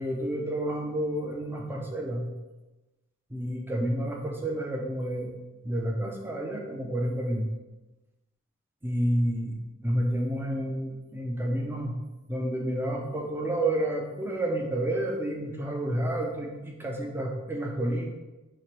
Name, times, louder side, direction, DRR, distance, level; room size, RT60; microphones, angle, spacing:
voice 1, 0.0-2.3 3.3-5.3 5.6-7.5 8.8-9.5 9.8-11.9 12.3-18.1, right 1 dB, 10° right, 0 dB, 0.5 m, -30 dB
3.2 x 2.9 x 4.3 m, 1.1 s
head